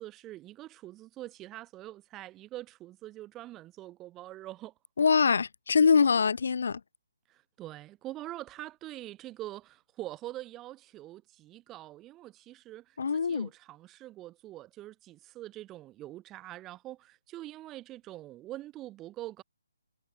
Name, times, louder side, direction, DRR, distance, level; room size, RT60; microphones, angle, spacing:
voice 1, 0.0-4.7 7.3-19.4, right 15 dB, 15° right, 1.7 m, -44 dB
voice 2, 5.0-6.8 13.0-13.5, left 5 dB, 65° left, 0.7 m, -24 dB
hypercardioid pair, 160°, 0 cm